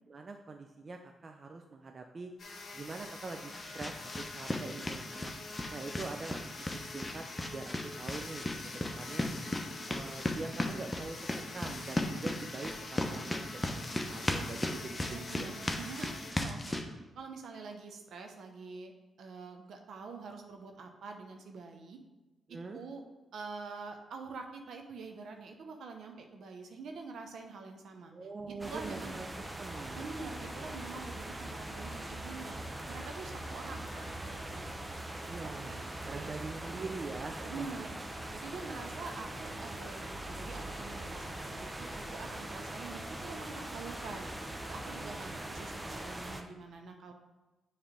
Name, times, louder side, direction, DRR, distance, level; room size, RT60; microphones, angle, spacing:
voice 1, 0.1-2.3 2.7-5.3 5.7-6.5 6.9-9.3 9.9-11.2 11.5-15.6 22.5-22.8 28.1-29.3 29.6-30.1 35.2-37.7 45.0-45.8 47.1-47.2, right 3 dB, 45° right, 4 dB, 0.5 m, -44 dB
sound 1, 2.4-16.3, left 3 dB, 60° left, 1.0 m, -46 dB
sound 2, 2.8-16.8, left 1 dB, 20° left, 0.9 m, -37 dB
voice 2, 15.1-16.8 17.2-18.9 19.2-22.0 22.7-23.0 23.3-28.1 28.4-29.2 29.9-32.6 32.9-34.7 35.3-35.8 36.1-37.0 37.4-44.3 44.7-47.1, right 4 dB, 70° right, 4 dB, 0.8 m, -46 dB
sound 3, 28.6-46.4, right 1 dB, 15° right, 0.9 m, -42 dB
7.3 x 3.3 x 5.2 m, 1.1 s
hypercardioid pair, 45°, 0 cm